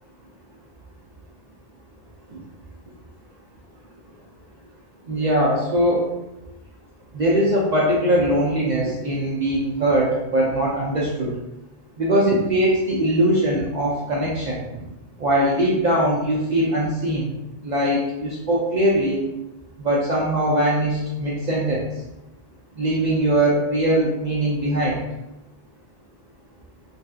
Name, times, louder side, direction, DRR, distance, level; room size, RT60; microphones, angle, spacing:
voice 1, 5.1-6.0 7.1-11.3 12.0-14.8 15.2-17.3 17.6-19.2 19.8-21.9 22.8-25.0, right 1 dB, 55° right, -5 dB, 0.6 m, -21 dB
3.2 x 2.7 x 2.3 m, 0.98 s
omnidirectional pair, 1.0 m